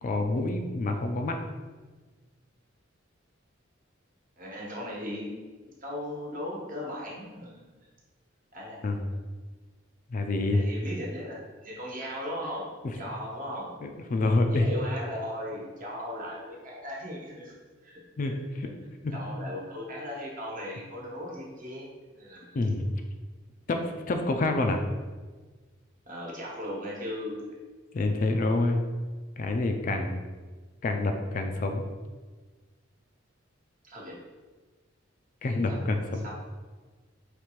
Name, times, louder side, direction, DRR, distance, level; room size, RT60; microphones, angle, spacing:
voice 1, 0.0-1.4 8.8-9.0 10.1-10.6 13.8-14.7 18.2-18.3 19.0-19.2 22.5-22.8 23.7-24.8 27.9-28.8 29.4-30.2 30.8-31.8 35.4-36.2, left 2 dB, 40° left, 5 dB, 0.4 m, -27 dB
voice 2, 4.4-5.4 5.8-7.7 8.5-9.2 10.5-12.7 12.9-13.7 14.5-17.5 17.8-18.3 19.1-22.6 26.1-27.4 33.8-34.1 35.5-35.8 36.2-36.3, left 1 dB, 45° right, -3 dB, 1.2 m, -37 dB
5.1 x 3.2 x 3.1 m, 1.4 s
head